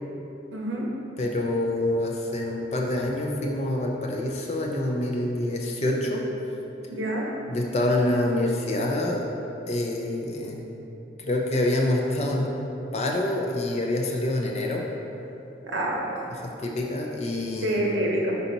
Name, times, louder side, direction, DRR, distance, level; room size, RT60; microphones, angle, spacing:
voice 1, 0.5-0.8 6.9-7.3 15.6-16.3 17.6-18.4, right 1 dB, 85° right, -2 dB, 0.9 m, -27 dB
voice 2, 1.2-6.2 7.5-9.2 9.7-10.6 11.2-12.5 12.9-14.8 16.4-18.0, left 1 dB, 35° left, 0 dB, 0.5 m, -26 dB
5.8 x 4.0 x 4.0 m, 3.0 s
head